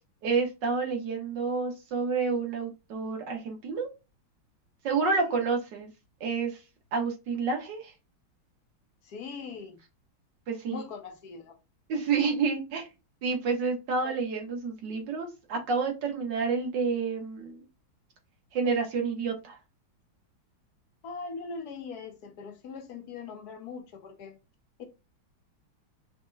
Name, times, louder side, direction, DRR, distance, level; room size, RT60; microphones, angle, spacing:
voice 1, 0.2-3.9 4.8-5.9 6.2-6.6 6.9-7.9 10.5-10.8 11.9-12.9 13.2-17.6 18.5-19.6, right 4 dB, 65° right, 1.7 m, -29 dB
voice 2, 5.0-5.4 9.0-9.8 10.7-11.6 14.0-14.1 21.0-24.4 24.8-24.9, left 5 dB, 65° left, 1.0 m, -41 dB
5.3 x 2.8 x 2.2 m
omnidirectional pair, 2.3 m